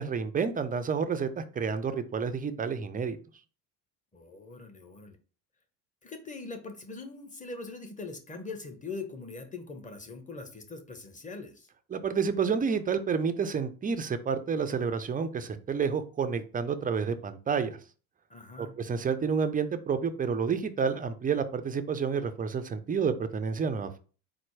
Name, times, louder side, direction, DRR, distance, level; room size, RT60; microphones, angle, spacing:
voice 1, 0.0-3.2 11.9-17.8 18.6-24.0, right 6 dB, 20° right, 10 dB, 0.4 m, -29 dB
voice 2, 4.1-5.2 6.0-11.7 18.3-18.7, left 3 dB, 15° left, 5 dB, 1.0 m, -42 dB
4.3 x 2.1 x 4.6 m, 0.37 s
hypercardioid pair, 70°, 49 cm